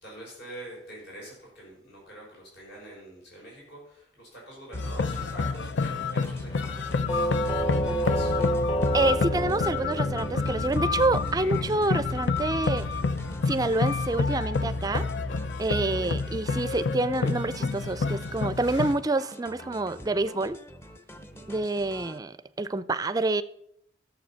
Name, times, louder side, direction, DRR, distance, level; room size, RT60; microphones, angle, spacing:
voice 1, 0.0-7.3 7.9-8.4 15.7-15.9 21.3-21.5, right 1 dB, 65° left, 5.5 m, -46 dB
sound 1, 4.7-18.9, left 4 dB, 80° left, 0.6 m, -29 dB
sound 2, 4.7-22.2, equal, 15° left, 0.7 m, -46 dB
Doorbell, 7.1-15.9, right 1 dB, 35° left, 1.4 m, -32 dB
voice 2, 8.9-12.9 13.5-15.1 15.6-20.6 21.5-23.4, right 2 dB, 20° right, 0.4 m, -27 dB
13.5 x 7.2 x 5.7 m
head